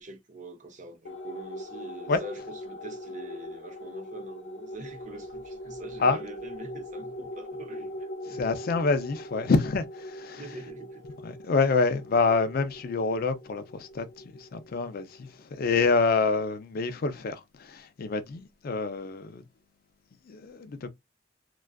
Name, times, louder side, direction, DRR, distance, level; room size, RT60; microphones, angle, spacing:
voice 1, 0.0-8.5 10.4-11.2, right 2 dB, 45° right, 0.6 m, -44 dB
sound 1, 1.1-15.8, left 1 dB, 90° left, 0.7 m, -42 dB
voice 2, 8.3-10.6 11.2-19.5 20.3-20.9, left 4 dB, 55° left, 0.4 m, -27 dB
2.3 x 2.3 x 2.4 m
head